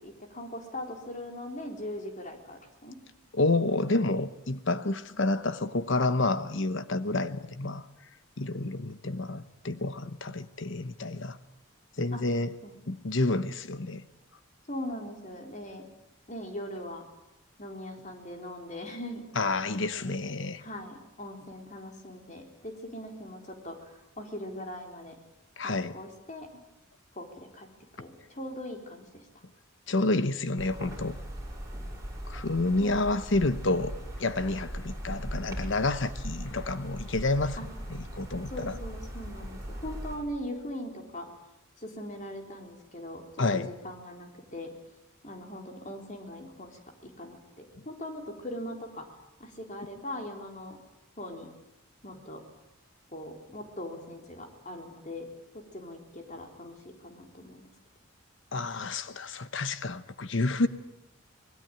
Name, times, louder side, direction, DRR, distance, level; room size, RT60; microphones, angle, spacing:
voice 1, 0.0-3.0 12.1-12.2 12.6-12.7 14.7-15.9 16.3-17.1 17.6-19.2 19.9-20.2 20.6-25.2 25.6-26.6 27.2-27.7 28.0-29.3 32.8-32.9 37.6-37.7 38.5-41.3 41.8-44.7 45.2-50.8 51.2-51.5 52.0-52.4 53.1-55.3 55.5-57.7, left 1 dB, 35° left, 3.7 m, -40 dB
voice 2, 3.3-7.8 8.4-11.4 12.0-12.5 12.9-14.0 19.3-20.6 25.6-25.9 29.9-31.1 32.3-33.9 34.2-37.6 37.9-38.8 43.4-43.7 58.5-60.7, left 2 dB, 60° left, 1.0 m, -29 dB
sound 1, 30.6-40.2, equal, 15° right, 6.7 m, -39 dB
25.5 x 20.5 x 9.2 m
head